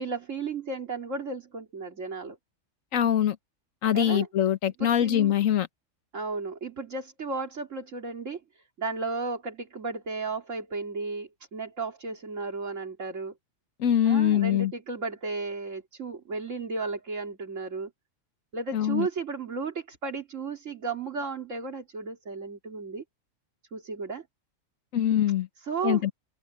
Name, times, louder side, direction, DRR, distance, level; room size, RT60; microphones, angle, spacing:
voice 1, 0.0-2.4 3.9-4.3 4.8-5.4 6.1-13.3 14.0-17.9 18.5-23.0 23.7-24.2 25.6-26.0, right 4 dB, 70° right, 3.2 m, -34 dB
voice 2, 2.9-3.4 3.8-5.7 13.8-14.7 18.7-19.1 24.9-25.5 25.8-26.1, left 10 dB, 80° left, 1.3 m, -23 dB
omnidirectional pair, 1.4 m